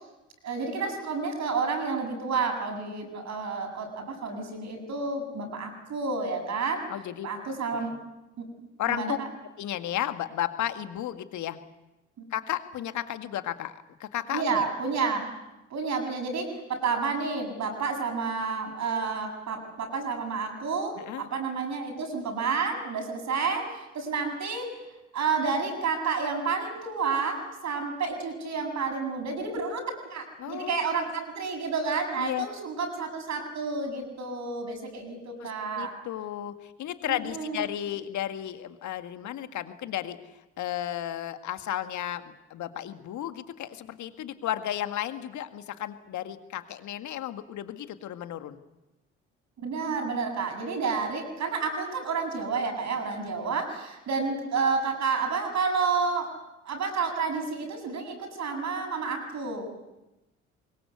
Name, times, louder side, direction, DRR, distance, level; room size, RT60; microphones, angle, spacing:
voice 1, 0.4-6.9 7.2-7.9 8.4-8.5 8.9-9.3 14.3-15.3 15.7-24.7 25.1-35.9 37.1-37.6 49.6-56.3 56.6-59.8, right 4 dB, 50° right, 5 dB, 7.8 m, -30 dB
voice 2, 6.9-7.3 7.7-7.9 8.8-9.2 9.6-11.6 12.3-14.7 21.0-21.2 30.4-31.0 32.2-32.5 35.4-40.2 40.6-48.6, left 11 dB, 55° left, 9 dB, 2.0 m, -33 dB
25.5 x 21.5 x 8.3 m, 0.99 s
figure-of-eight pair, 50°, 35 cm